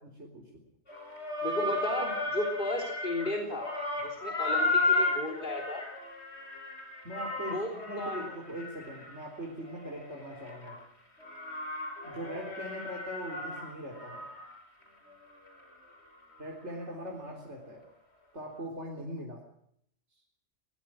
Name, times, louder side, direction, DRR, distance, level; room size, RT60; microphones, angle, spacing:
voice 1, 0.0-0.6 7.0-10.8 12.0-14.3 16.4-17.9 18.3-19.4, equal, 80° right, -2 dB, 4.1 m, -41 dB
sound 1, 0.9-3.3 3.6-10.7 11.2-14.5 14.8-14.9 15.5-15.6, left 2 dB, 70° left, 6.3 m, -34 dB
voice 2, 1.4-3.7 4.0-5.8 7.5-8.3, left 1 dB, 45° left, 1 dB, 3.6 m, -34 dB
23.0 x 19.5 x 6.2 m, 0.70 s
omnidirectional pair, 1.2 m